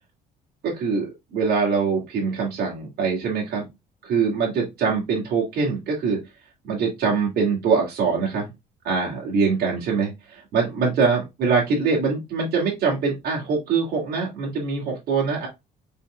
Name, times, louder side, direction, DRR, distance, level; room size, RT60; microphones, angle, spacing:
voice 1, 0.6-3.6 4.0-6.2 6.6-8.5 8.8-15.5, right 5 dB, 65° right, -3 dB, 2.4 m, -23 dB
5.1 x 4.5 x 2.2 m, 0.21 s
cardioid pair, 110°, 17 cm